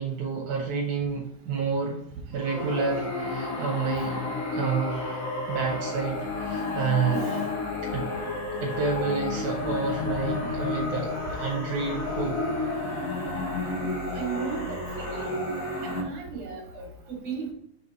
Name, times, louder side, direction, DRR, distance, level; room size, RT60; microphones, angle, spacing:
voice 1, 0.0-2.0 2.3-4.2 4.5-5.2 5.5-7.3 7.9-8.1 8.6-12.4, right 5 dB, 75° right, -1 dB, 2.3 m, -29 dB
sound 1, 2.4-16.0, left 3 dB, 85° left, 3.0 m, -31 dB
voice 2, 7.1-7.5 14.1-15.3 15.8-17.5, right 6 dB, 60° right, 1 dB, 2.6 m, -36 dB
6.3 x 4.4 x 4.2 m, 0.70 s
omnidirectional pair, 3.6 m